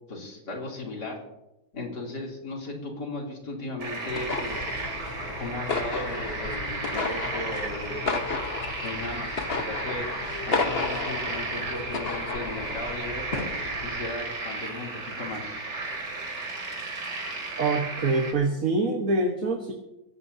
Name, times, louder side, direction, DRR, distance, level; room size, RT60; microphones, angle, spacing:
voice 1, 0.1-1.2 1.7-4.9 5.4-8.4 8.8-15.7, left 2 dB, 75° left, -1 dB, 3.9 m, -36 dB
sound 1, 3.8-18.3, right 3 dB, 75° right, 3.3 m, -34 dB
sound 2, 4.1-14.1, left 4 dB, 40° left, 1.2 m, -33 dB
voice 2, 17.6-19.7, right 3 dB, 55° right, 2 dB, 1.8 m, -25 dB
22.0 x 16.5 x 2.8 m, 0.94 s
omnidirectional pair, 1.8 m